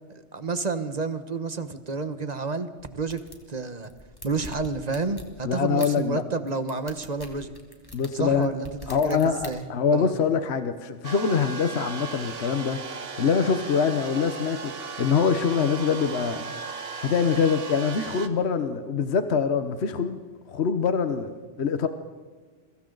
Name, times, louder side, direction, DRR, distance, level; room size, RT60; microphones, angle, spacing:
voice 1, 0.1-3.2 3.5-3.9 4.2-7.5 8.2-8.7 9.0-9.6 9.9-10.1, right 4 dB, 35° right, 10 dB, 1.1 m, -30 dB
sound 1, 2.8-3.4 3.8-5.3 5.8-5.9 6.5-9.5, left 1 dB, 20° left, 2.5 m, -43 dB
voice 2, 5.4-6.2 7.9-8.5 8.9-12.8 13.2-14.7 15.0-16.4 17.0-20.2 20.5-21.3 21.6-21.9, left 6 dB, 60° left, 9 dB, 1.2 m, -24 dB
sound 2, 11.0-18.3, right 4 dB, 55° right, 1.4 m, -36 dB
29.5 x 23.0 x 4.0 m, 1.5 s
omnidirectional pair, 1.3 m